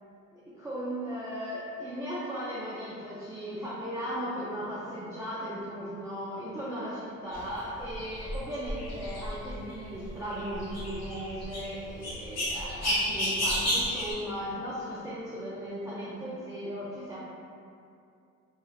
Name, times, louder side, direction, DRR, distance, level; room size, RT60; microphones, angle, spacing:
voice 1, 0.3-17.2, equal, 10° right, -9 dB, 0.3 m, -37 dB
sound 1, 7.3-14.1, equal, 60° left, 1.0 m, -32 dB
2.8 x 2.1 x 2.3 m, 2.4 s
cardioid pair, 90°, 30 cm